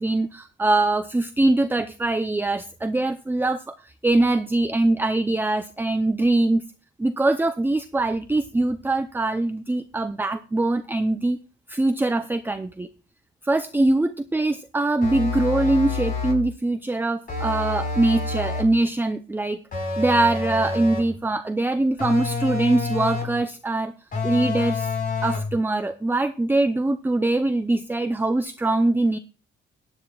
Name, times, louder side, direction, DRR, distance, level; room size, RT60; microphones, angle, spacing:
voice 1, 0.0-6.6 7.0-11.4 11.7-12.9 13.4-23.9 24.2-24.9 25.2-29.2, right 2 dB, 10° right, 9 dB, 0.6 m, -23 dB
sound 1, 15.0-16.5 17.3-18.8 19.7-21.2 22.0-23.4 24.1-25.6, left 4 dB, 45° left, 4.8 m, -28 dB
17.5 x 9.8 x 2.4 m, 0.35 s
cardioid pair, 90°, 20 cm